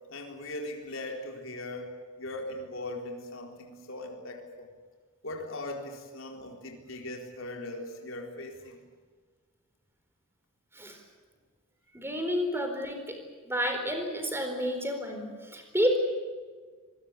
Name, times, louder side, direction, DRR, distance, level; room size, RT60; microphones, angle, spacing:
voice 1, 0.1-4.7 5.2-8.8, left 1 dB, 60° left, 2 dB, 4.1 m, -39 dB
voice 2, 11.9-16.0, equal, 10° right, 5 dB, 4.3 m, -30 dB
25.0 x 20.5 x 8.3 m, 1.5 s
head